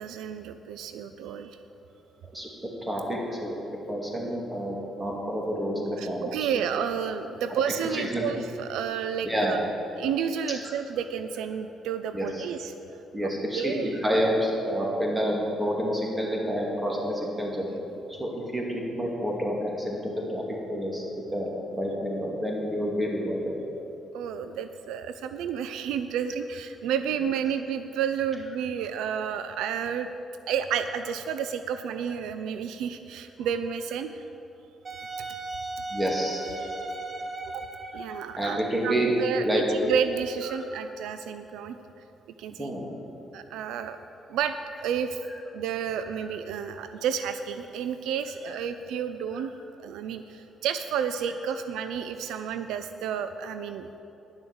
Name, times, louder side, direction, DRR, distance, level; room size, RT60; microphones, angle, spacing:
voice 1, 0.0-1.6 6.0-9.7 10.0-12.7 13.2-14.0 24.1-30.1 30.5-34.2 37.5-37.6 37.9-41.8 42.4-42.7 43.3-44.0 44.3-45.2 45.5-49.5 49.8-54.0, right 8 dB, 90° right, 10 dB, 0.4 m, -31 dB
voice 2, 2.8-3.5 3.9-6.5 7.5-7.6 7.9-8.2 9.2-9.6 10.4-10.6 12.1-12.4 13.1-17.7 18.1-21.0 21.3-23.5 35.9-36.4 38.4-39.1 39.4-39.6 42.6-42.8 45.3-45.4 46.0-46.3 48.5-48.6, equal, 15° right, -2 dB, 2.4 m, -29 dB
Wind instrument woodwind instrument, 34.8-40.5, right 2 dB, 30° right, 1.3 m, -38 dB
10.5 x 7.1 x 7.0 m, 2.9 s
cardioid pair, 90°, 0 cm